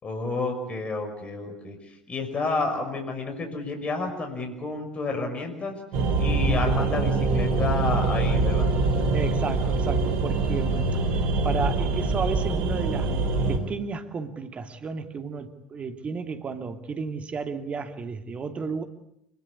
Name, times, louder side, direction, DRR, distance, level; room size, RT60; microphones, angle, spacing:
voice 1, 0.0-5.8 6.2-8.7, left 3 dB, 30° left, 6.3 m, -30 dB
sound 1, 5.9-13.6, right 3 dB, 55° right, 4.9 m, -24 dB
voice 2, 9.1-11.0 11.4-13.1 13.5-18.8, right 5 dB, 30° right, 2.7 m, -32 dB
28.5 x 21.5 x 8.6 m
figure-of-eight pair, 70°, 4 cm